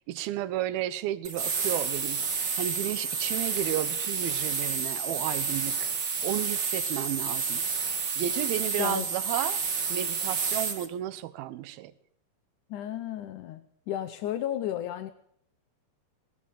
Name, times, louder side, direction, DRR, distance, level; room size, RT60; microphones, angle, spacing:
voice 1, 0.1-2.3 2.6-5.9 6.2-7.6 8.2-9.6 9.9-11.9, right 13 dB, 70° right, 15 dB, 2.7 m, -33 dB
sound 1, 1.2-10.9, right 5 dB, 45° right, 1.5 m, -30 dB
voice 2, 12.7-15.1, left 11 dB, 75° left, 9 dB, 1.9 m, -33 dB
20.0 x 18.5 x 7.5 m, 0.64 s
omnidirectional pair, 4.8 m